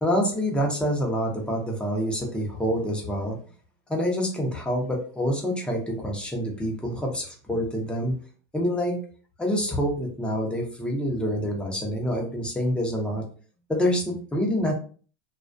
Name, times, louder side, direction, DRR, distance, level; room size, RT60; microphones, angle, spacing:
voice 1, 0.0-3.4 3.9-8.1 8.5-9.0 9.4-13.2 13.7-14.7, equal, 5° left, 0 dB, 0.7 m, -26 dB
2.3 x 2.3 x 2.5 m, 0.41 s
supercardioid pair, 125°, 15 cm